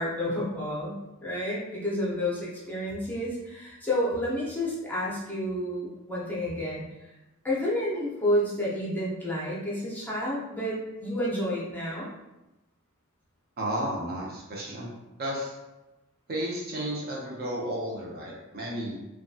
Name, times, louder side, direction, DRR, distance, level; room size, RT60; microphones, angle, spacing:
voice 1, 0.0-6.8 7.4-12.1, left 1 dB, 10° left, -7 dB, 0.6 m, -30 dB
voice 2, 13.6-14.9 15.2-15.6 16.3-19.0, right 1 dB, 45° right, -3 dB, 0.6 m, -32 dB
2.7 x 2.3 x 2.6 m, 1.0 s
head